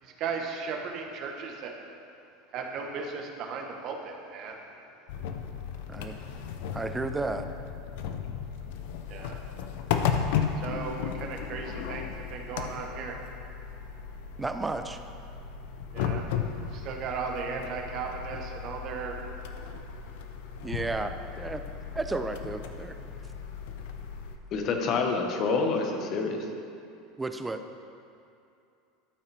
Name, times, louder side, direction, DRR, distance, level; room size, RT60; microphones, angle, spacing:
voice 1, 0.0-1.8 2.5-4.6 9.1-9.4 10.6-13.2 15.9-16.3 16.7-19.2, right 5 dB, 50° right, 2 dB, 1.1 m, -36 dB
sound 1, 5.1-24.4, left 7 dB, 70° left, 0.6 m, -35 dB
voice 2, 6.7-7.5 14.4-15.0 20.6-21.6 21.9-23.0 27.2-27.6, right 3 dB, 15° right, 8 dB, 0.5 m, -32 dB
voice 3, 24.5-26.4, left 4 dB, 50° left, 3 dB, 1.1 m, -27 dB
12.5 x 5.6 x 3.4 m, 2.6 s
hypercardioid pair, 95°, 0 cm